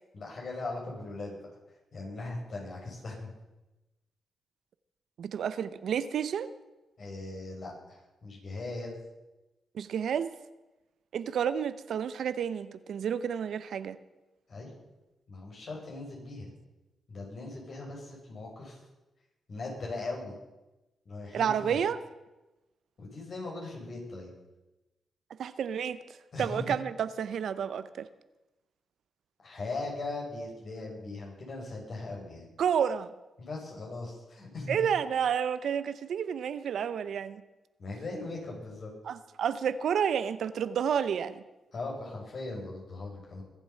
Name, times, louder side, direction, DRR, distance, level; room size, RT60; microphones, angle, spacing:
voice 1, 0.1-1.4 1.9-3.3 7.0-9.0 14.5-14.7 15.3-16.5 17.1-18.8 19.5-20.3 21.0-21.8 23.0-24.3 26.3-26.6 29.4-32.5 33.4-34.8 37.8-38.9 41.7-43.4, left 2 dB, 60° left, -1 dB, 6.3 m, -39 dB
voice 2, 5.2-6.5 9.7-10.3 11.1-14.0 21.3-22.0 25.4-26.0 26.4-28.1 32.6-33.1 34.7-37.4 39.1-41.4, right 8 dB, 75° right, 14 dB, 0.7 m, -30 dB
23.5 x 7.8 x 5.7 m, 1.0 s
supercardioid pair, 55°, 0 cm